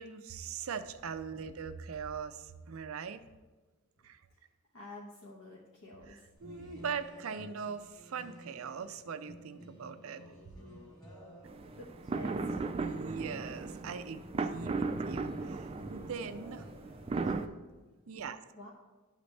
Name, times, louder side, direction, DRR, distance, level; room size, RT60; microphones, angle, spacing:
voice 1, 0.0-3.2 4.0-4.2 6.4-10.2 12.8-16.7 18.1-18.4, right 6 dB, 90° right, 10 dB, 0.5 m, -41 dB
voice 2, 4.0-6.3 11.8-13.4 18.5-18.7, left 2 dB, 65° left, -5 dB, 1.1 m, -51 dB
sound 1, 6.4-17.5, equal, 20° left, 1.9 m, -53 dB
sound 2, 11.4-17.5, right 3 dB, 30° right, 0.3 m, -36 dB
12.0 x 4.0 x 3.2 m, 1.3 s
head